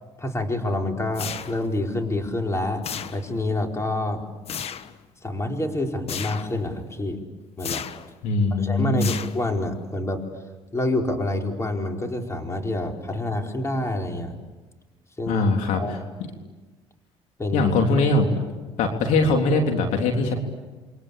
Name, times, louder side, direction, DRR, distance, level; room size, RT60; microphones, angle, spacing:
voice 1, 0.2-2.8 3.1-4.2 5.2-7.2 7.6-7.8 8.6-10.2 10.7-14.4 15.2-15.4 15.7-16.0 17.4-17.7, left 1 dB, 20° left, 2 dB, 4.7 m, -27 dB
sound 1, 1.1-1.8 2.8-3.5 4.5-5.0 6.1-6.6 7.6-8.1 9.0-9.7, left 8 dB, 55° left, 1.3 m, -34 dB
voice 2, 8.2-9.1 15.3-16.0 17.5-18.3 18.8-20.3, left 2 dB, 80° left, 3 dB, 3.7 m, -21 dB
29.0 x 23.5 x 8.5 m, 1.2 s
supercardioid pair, 75°, 12 cm